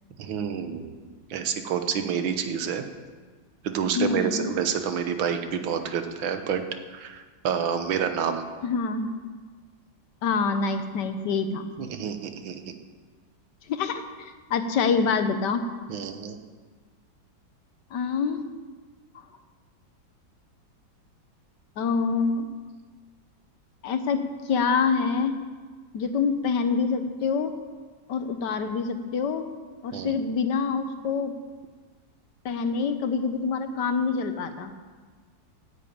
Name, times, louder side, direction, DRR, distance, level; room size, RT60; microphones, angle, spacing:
voice 1, 0.2-2.8 3.6-6.6 6.9-8.4 11.8-12.6 15.9-16.4 29.9-30.1, right 7 dB, 90° right, 8 dB, 1.8 m, -28 dB
voice 2, 3.9-4.5 8.6-9.1 10.2-11.7 13.7-15.6 17.9-18.4 21.8-22.5 23.8-24.2 24.5-25.4 25.9-27.5 28.1-29.4 29.8-31.3 32.4-34.7, left 5 dB, 65° left, 9 dB, 1.3 m, -26 dB
10.5 x 8.4 x 8.6 m, 1.4 s
omnidirectional pair, 2.1 m